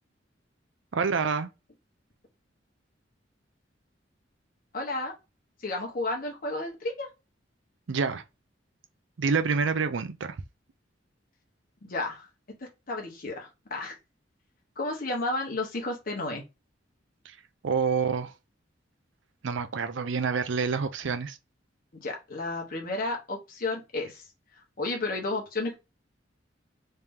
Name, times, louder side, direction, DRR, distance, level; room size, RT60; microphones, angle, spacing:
voice 1, 0.9-1.5 7.9-8.2 9.2-10.4 17.3-17.4 17.6-18.3 19.4-21.4, right 5 dB, 80° right, 0.5 m, -27 dB
voice 2, 4.7-5.1 5.6-7.1 11.8-12.3 12.6-13.9 14.8-16.4 22.0-24.2 24.8-25.8, left 2 dB, 50° left, 1.1 m, -32 dB
3.3 x 2.8 x 3.4 m
head